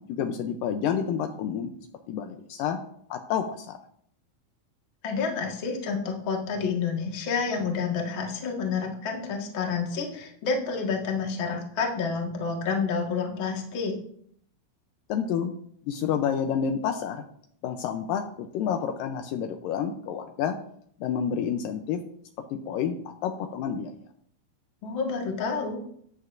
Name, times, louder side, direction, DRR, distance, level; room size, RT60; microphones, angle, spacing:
voice 1, 0.0-1.7 2.1-2.8 3.1-3.8 15.1-15.5 15.9-17.2 17.6-20.6 21.0-22.0 22.5-24.0, left 8 dB, 80° left, 6 dB, 2.2 m, -29 dB
voice 2, 5.0-13.9 24.8-25.8, left 5 dB, 45° left, 0 dB, 1.8 m, -29 dB
13.0 x 9.6 x 2.6 m, 0.65 s
omnidirectional pair, 4.2 m